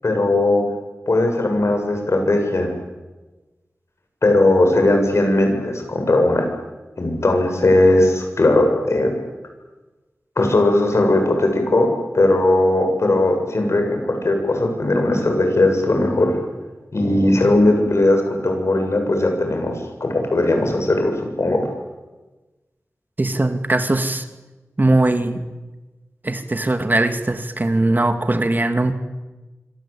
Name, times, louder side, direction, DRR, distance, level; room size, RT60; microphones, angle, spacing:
voice 1, 0.0-0.6 1.1-2.7 4.2-6.5 7.0-9.1 10.4-11.9 12.1-16.4 16.9-21.6, left 2 dB, 65° left, 4 dB, 7.6 m, -18 dB
voice 2, 23.2-24.3 24.8-25.4 26.2-28.9, right 2 dB, 40° right, 8 dB, 2.5 m, -20 dB
26.0 x 25.5 x 8.7 m, 1.2 s
wide cardioid pair, 65°, 5 cm